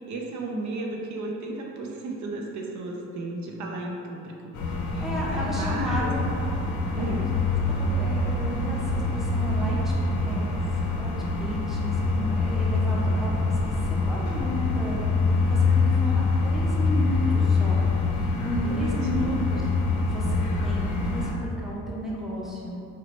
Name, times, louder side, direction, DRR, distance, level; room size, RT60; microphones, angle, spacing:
voice 1, 0.0-5.0 5.3-6.1 6.9-7.4 18.6-19.3, right 2 dB, 70° right, 0 dB, 0.5 m, -34 dB
sound 1, 4.5-21.3, left 3 dB, 80° left, 0.6 m, -25 dB
voice 2, 5.0-6.3 7.0-7.1 7.8-9.9 10.2-10.7 11.0-11.1 11.4-13.7 14.0-17.8 18.1-19.6 20.0-22.8, equal, ahead, -5 dB, 0.6 m, -33 dB
3.9 x 2.1 x 3.0 m, 2.6 s
cardioid pair, 90°, 30 cm